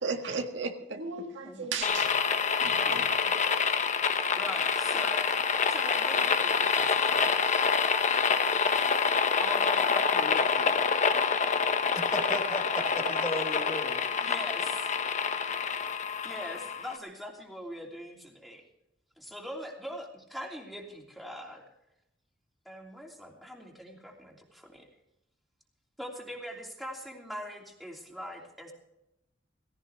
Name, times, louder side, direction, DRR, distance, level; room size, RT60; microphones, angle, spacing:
voice 1, 0.0-2.1 2.6-3.4, right 4 dB, 80° right, 3 dB, 1.7 m, -35 dB
voice 2, 1.4-1.8 2.8-3.1 4.4-5.4 5.7-7.3 9.3-11.0 14.2-14.9 16.2-18.6 19.2-21.7 22.6-24.9 26.0-28.7, equal, ahead, -1 dB, 3.0 m, -42 dB
sound 1, 1.8-17.0, left 5 dB, 40° left, 0.9 m, -27 dB
voice 3, 11.9-14.3, left 1 dB, 20° left, 2 dB, 4.2 m, -35 dB
17.5 x 16.5 x 3.5 m, 0.84 s
head